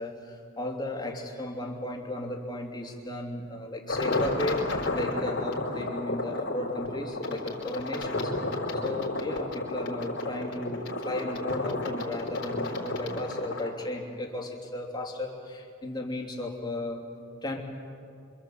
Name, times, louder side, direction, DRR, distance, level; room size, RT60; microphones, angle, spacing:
voice 1, 0.0-8.3 8.8-17.0 17.4-17.6, left 1 dB, 20° left, 1 dB, 3.1 m, -35 dB
sound 1, 3.9-13.7, left 2 dB, 60° left, 4.2 m, -32 dB
27.5 x 25.5 x 7.9 m, 2.4 s
head